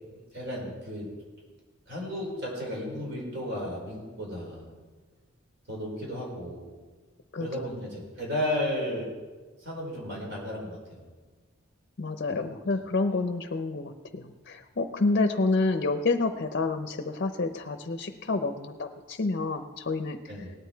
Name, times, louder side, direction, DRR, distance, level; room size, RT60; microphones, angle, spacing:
voice 1, 0.3-1.1 1.9-4.6 5.7-6.6 7.4-9.1 9.6-11.0 12.3-12.5 20.3-20.5, left 1 dB, 60° right, -3 dB, 4.8 m, -34 dB
voice 2, 7.3-7.7 12.0-20.2, left 3 dB, 50° left, 7 dB, 0.7 m, -29 dB
18.5 x 9.6 x 4.5 m, 1.4 s
head